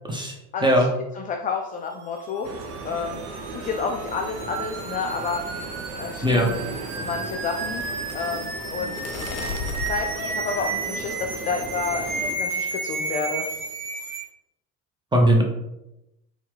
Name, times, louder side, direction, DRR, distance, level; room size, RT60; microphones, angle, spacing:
voice 1, 0.5-0.9 1.1-2.5 2.8-5.4 6.0-6.6 6.9-7.8 8.1-9.0 9.8-13.5, left 5 dB, 20° left, 2 dB, 0.3 m, -30 dB
sound 1, 2.0-14.2, right 3 dB, 80° right, 0.8 m, -33 dB
sound 2, 2.4-12.4, right 4 dB, 35° right, 0.7 m, -37 dB
voice 2, 6.2-6.5 15.1-15.4, equal, 10° right, 0 dB, 1.0 m, -19 dB
sound 3, 7.0-11.4 11.8-12.2 12.5-12.8 13.1-13.7, left 5 dB, 75° left, 0.7 m, -37 dB
4.2 x 2.5 x 3.2 m, 0.89 s
hypercardioid pair, 65°, 43 cm